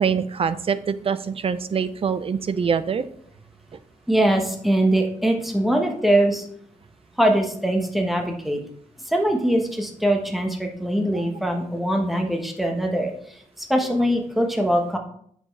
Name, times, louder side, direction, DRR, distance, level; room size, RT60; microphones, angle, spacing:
voice 1, 0.0-3.0 11.1-11.3, right 6 dB, 40° right, 13 dB, 0.5 m, -24 dB
voice 2, 4.1-6.4 7.2-8.6 9.1-13.1 13.7-15.0, right 1 dB, ahead, 2 dB, 1.2 m, -22 dB
7.7 x 6.3 x 3.2 m, 0.64 s
wide cardioid pair, 120°, 14 cm